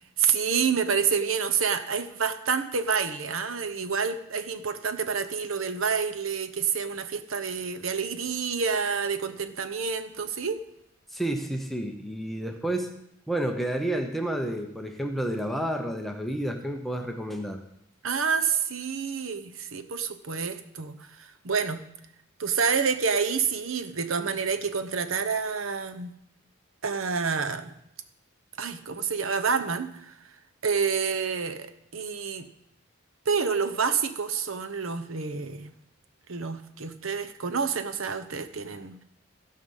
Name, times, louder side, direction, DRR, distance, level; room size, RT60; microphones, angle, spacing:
voice 1, 0.2-10.6 18.0-21.8 22.4-26.1 26.8-27.7 28.6-30.1 30.6-32.5 33.3-35.7 36.3-39.0, right 6 dB, 80° right, 9 dB, 0.9 m, -28 dB
voice 2, 11.1-12.9 13.3-17.6, right 1 dB, ahead, 3 dB, 0.9 m, -30 dB
16.0 x 5.7 x 5.6 m, 0.78 s
head